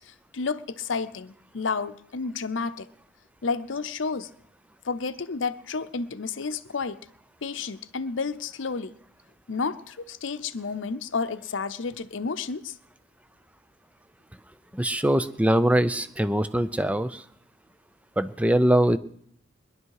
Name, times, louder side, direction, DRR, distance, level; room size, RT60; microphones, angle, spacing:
voice 1, 0.1-2.9 3.4-4.3 4.8-7.0 7.4-8.9 9.5-12.8, left 4 dB, 85° left, 13 dB, 0.7 m, -31 dB
voice 2, 14.7-17.2 18.2-19.0, right 1 dB, 5° right, 13 dB, 0.5 m, -22 dB
21.0 x 11.0 x 4.8 m, 0.67 s
head